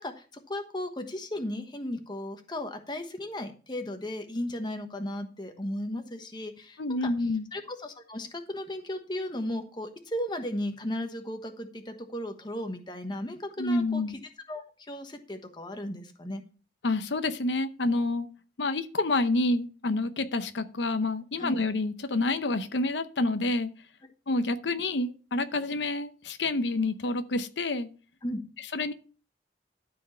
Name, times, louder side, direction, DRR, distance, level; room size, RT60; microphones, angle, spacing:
voice 1, 0.0-7.0 7.5-14.2 14.5-16.4 21.4-21.5 28.2-28.4, left 1 dB, 25° left, 6 dB, 1.2 m, -35 dB
voice 2, 6.8-7.5 13.6-14.1 16.8-18.3 18.6-23.7 24.3-27.9 28.7-28.9, left 2 dB, 90° left, 9 dB, 0.8 m, -28 dB
12.5 x 4.5 x 5.6 m, 0.36 s
head